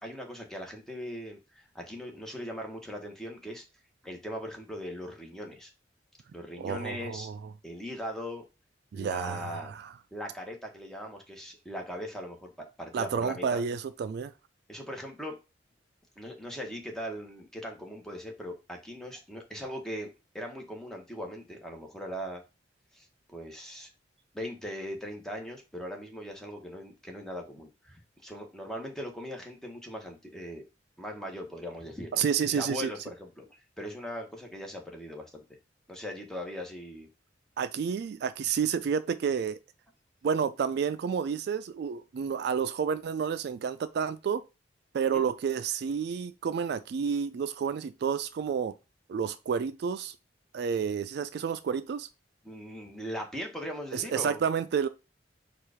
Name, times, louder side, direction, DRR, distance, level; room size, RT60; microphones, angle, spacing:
voice 1, 0.0-3.6 4.0-5.7 6.3-7.3 7.6-8.4 8.9-9.7 10.1-13.6 14.7-15.4 16.2-20.1 20.3-22.4 22.9-23.9 24.3-30.7 31.0-33.4 33.8-35.4 35.9-37.1 45.1-45.2 52.4-54.4, equal, 5° left, 1.0 m, -40 dB
voice 2, 6.6-7.4 8.9-9.9 12.9-14.3 32.1-32.9 37.6-39.6 40.2-44.4 44.9-48.7 49.1-50.2 50.5-52.1 53.9-54.9, right 7 dB, 60° right, 0.3 m, -30 dB
4.5 x 2.4 x 4.8 m
head